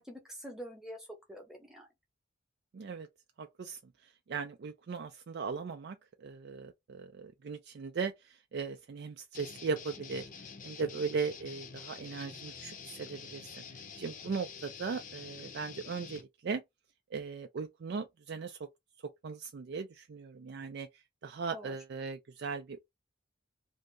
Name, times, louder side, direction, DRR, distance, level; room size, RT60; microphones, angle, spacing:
voice 1, 0.0-1.9 10.9-11.0 21.5-21.8, equal, 5° right, 0.8 m, -46 dB
voice 2, 2.7-3.1 3.4-3.8 4.3-10.3 10.6-16.6 17.1-18.6 19.2-20.9 21.2-22.8, right 5 dB, 60° right, 0.4 m, -38 dB
sound 1, 9.3-16.2, left 6 dB, 45° left, 0.6 m, -47 dB
2.7 x 2.5 x 3.2 m
head